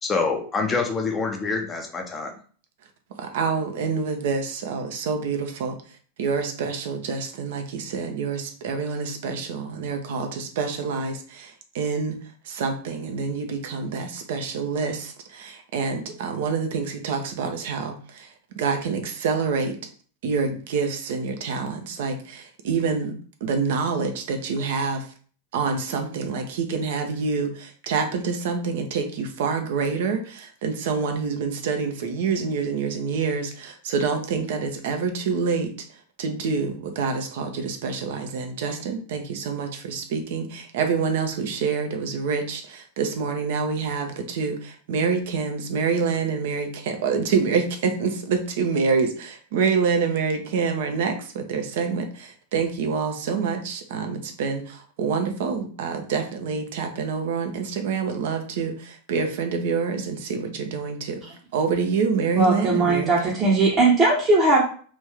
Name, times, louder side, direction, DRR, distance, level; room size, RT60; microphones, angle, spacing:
voice 1, 0.0-2.3, left 4 dB, 20° left, 2 dB, 0.6 m, -26 dB
voice 2, 3.2-5.8 6.2-12.2 12.5-18.3 18.6-19.7 20.2-22.1 22.6-23.1 23.4-25.1 25.5-35.7 36.2-61.2 61.5-63.1, right 5 dB, 55° right, 5 dB, 0.6 m, -27 dB
voice 3, 62.3-64.6, right 3 dB, 25° right, -4 dB, 0.9 m, -19 dB
3.1 x 2.6 x 3.3 m, 0.44 s
figure-of-eight pair, 90°, 0 cm